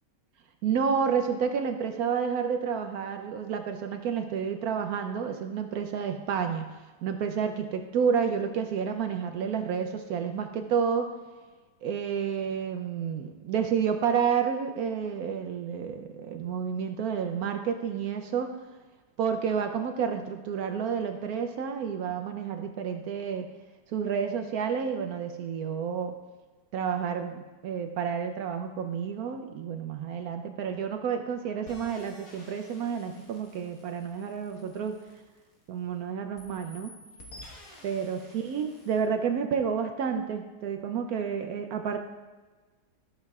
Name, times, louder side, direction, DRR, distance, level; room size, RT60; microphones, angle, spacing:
voice 1, 0.6-6.7 7.0-11.1 11.8-18.6 19.2-23.5 23.9-26.1 26.7-34.9 35.7-36.9 37.8-42.0, right 7 dB, 70° right, 6 dB, 0.9 m, -30 dB
sound 1, 31.7-35.9 36.4-39.1, left 1 dB, 55° left, 1.7 m, -52 dB
13.5 x 6.5 x 2.3 m, 1.3 s
omnidirectional pair, 1.8 m